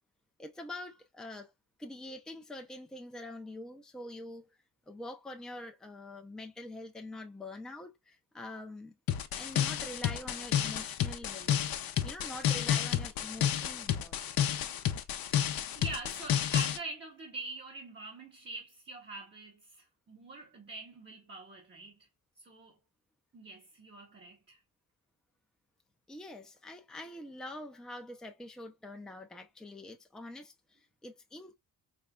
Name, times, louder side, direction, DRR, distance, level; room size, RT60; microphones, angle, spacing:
voice 1, 0.4-1.5 1.8-4.6 4.9-9.0 9.3-14.2 26.1-31.5, left 1 dB, ahead, 0.5 m, -45 dB
sound 1, 9.1-16.8, left 10 dB, 65° left, 0.7 m, -31 dB
voice 2, 15.7-22.1 22.4-22.8 23.3-24.6, right 2 dB, 30° right, 0.8 m, -44 dB
4.4 x 3.1 x 2.3 m
cardioid pair, 130°, 39 cm